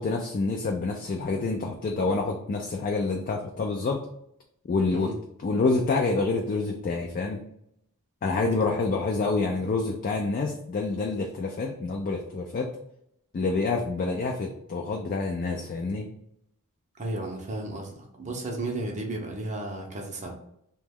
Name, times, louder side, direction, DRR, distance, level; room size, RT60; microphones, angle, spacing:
voice 1, 0.0-4.0 4.7-5.1 5.4-7.4 8.2-12.7 13.3-16.1, left 3 dB, 40° left, 2 dB, 0.3 m, -27 dB
voice 2, 4.9-5.2 17.0-20.3, right 2 dB, 35° right, 1 dB, 0.6 m, -34 dB
2.9 x 2.2 x 3.4 m, 0.75 s
head